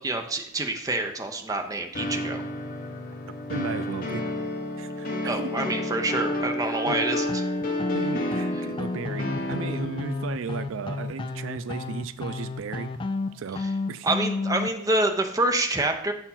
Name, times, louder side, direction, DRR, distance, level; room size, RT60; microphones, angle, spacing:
voice 1, 0.0-2.4 5.2-7.4 13.6-13.7 14.0-16.1, right 2 dB, 15° right, 5 dB, 0.6 m, -27 dB
sound 1, 1.9-10.2, left 1 dB, 45° left, 1.0 m, -30 dB
voice 2, 3.5-4.2 4.8-5.5 6.9-7.0 7.9-12.9 13.3-13.6 13.9-14.1, right 5 dB, 85° right, 13 dB, 0.4 m, -35 dB
sound 2, 7.3-14.7, left 3 dB, 25° left, 0.3 m, -32 dB
6.9 x 4.4 x 5.6 m, 0.71 s
head